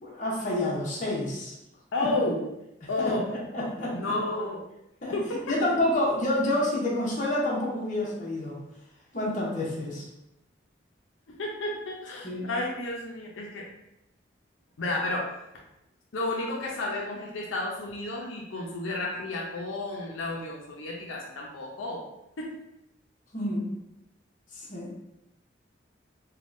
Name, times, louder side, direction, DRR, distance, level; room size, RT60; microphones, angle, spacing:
voice 1, 0.0-1.6 2.0-2.1 2.8-3.2 3.5-4.2 5.0-5.1 5.5-8.6 9.1-10.1 12.2-12.5 23.3-23.7 24.5-24.9, left 1 dB, 40° left, -5 dB, 0.8 m, -28 dB
voice 2, 1.9-2.4 2.9-3.2 3.9-4.6 5.1-5.6 11.3-13.6 14.8-15.3 16.1-22.0 22.4-22.5, left 2 dB, 90° left, -2 dB, 0.5 m, -31 dB
3.4 x 2.2 x 2.5 m, 0.86 s
head